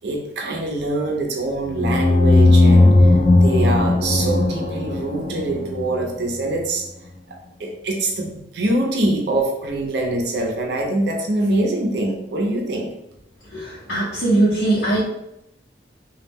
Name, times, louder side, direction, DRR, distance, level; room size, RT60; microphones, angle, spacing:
voice 1, 0.0-3.1 3.4-6.8 7.3-12.9, right 2 dB, 70° right, 1 dB, 0.6 m, -24 dB
sound 1, 1.7-6.3, left 2 dB, 30° left, 0.3 m, -16 dB
voice 2, 13.5-15.0, right 2 dB, 65° left, -9 dB, 0.8 m, -20 dB
2.3 x 2.1 x 3.4 m, 0.84 s
head